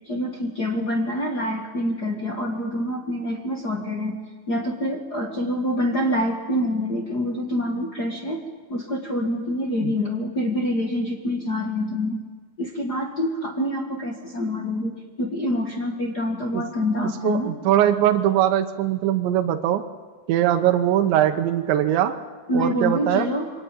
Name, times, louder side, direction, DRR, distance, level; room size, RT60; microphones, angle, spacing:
voice 1, 0.1-4.2 4.5-8.4 8.7-12.2 12.6-17.5 22.5-23.5, left 1 dB, 40° left, 2 dB, 1.4 m, -26 dB
voice 2, 17.0-19.8 20.3-22.2 22.5-23.3, right 11 dB, 90° right, 6 dB, 3.4 m, -21 dB
26.5 x 23.0 x 9.2 m, 1.4 s
omnidirectional pair, 5.0 m